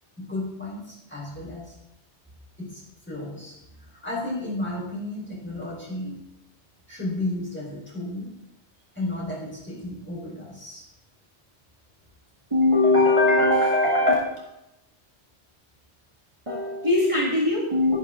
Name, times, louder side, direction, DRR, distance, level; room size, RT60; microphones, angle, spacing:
voice 1, 0.2-1.8 2.6-2.8 3.1-6.2 6.9-8.3 8.9-10.8, left 1 dB, 10° left, -5 dB, 4.4 m, -33 dB
voice 2, 12.5-14.1 16.5-18.0, left 2 dB, 25° right, -5 dB, 2.0 m, -20 dB
12.5 x 11.0 x 3.8 m, 0.87 s
omnidirectional pair, 1.2 m